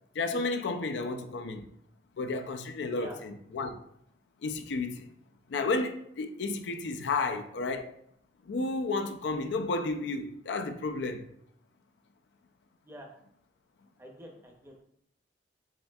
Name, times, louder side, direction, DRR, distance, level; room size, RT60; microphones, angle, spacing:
voice 1, 0.1-1.7 2.2-3.8 4.4-5.1 5.5-7.9 8.5-11.3, left 3 dB, 85° left, 0.4 m, -32 dB
voice 2, 14.0-14.8, equal, 15° right, 0.6 m, -47 dB
7.1 x 2.6 x 2.3 m
head